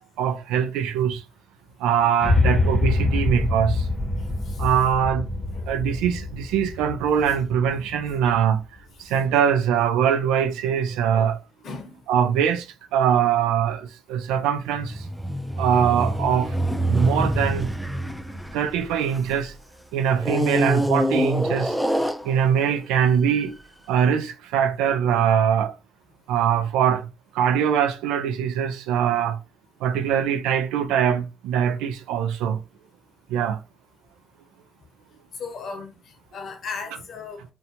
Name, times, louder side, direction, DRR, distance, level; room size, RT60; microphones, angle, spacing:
voice 1, 0.2-1.2 1.8-3.7 4.6-5.2 5.7-8.6 9.1-11.4 12.1-12.6 12.9-13.8 14.1-14.9 15.6-16.5 16.9-17.7 18.5-19.5 19.9-21.7 22.3-23.5 23.9-24.3 24.5-25.7 26.3-27.0 27.4-29.4 29.8-32.6 33.3-33.6, right 8 dB, 80° right, 0.3 m, -22 dB
sound 1, 2.2-8.4, left 2 dB, 15° left, 0.8 m, -25 dB
voice 2, 11.6-12.0 29.0-29.2 33.3-33.5 35.3-37.4, left 4 dB, 60° left, 0.7 m, -37 dB
sound 2, 14.8-19.5 20.2-22.7 23.4-23.5, equal, ahead, 0.4 m, -26 dB
2.6 x 2.2 x 2.7 m
hypercardioid pair, 50°, 0 cm